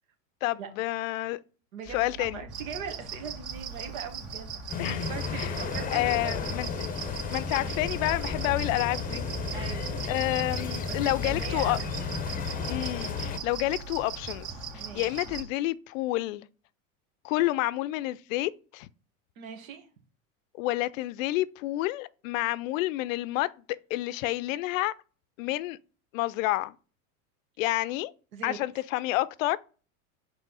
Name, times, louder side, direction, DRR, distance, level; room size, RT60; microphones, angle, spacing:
voice 1, 0.4-1.4 1.9-2.4 4.8-5.1 5.4-5.5 5.9-6.9 7.3-9.3 9.6-9.7 10.1-11.8 12.7-14.5 14.7-16.5 17.2-18.9 20.5-24.9 25.4-25.8 26.1-26.8 27.6-28.1 28.4-29.6, left 17 dB, 65° left, 0.5 m, -29 dB
voice 2, 1.7-4.5 5.1-6.5 9.5-9.9 10.9-11.9 14.8-15.2 19.4-19.9 28.3-28.6, right 7 dB, 70° right, 1.7 m, -40 dB
sound 1, 1.8-15.4, right 5 dB, ahead, 1.1 m, -46 dB
sound 2, 2.5-15.4, right 6 dB, 45° right, 2.0 m, -40 dB
sound 3, 4.7-13.4, left 5 dB, 20° left, 0.7 m, -33 dB
5.5 x 4.3 x 4.0 m
hypercardioid pair, 105°, 42 cm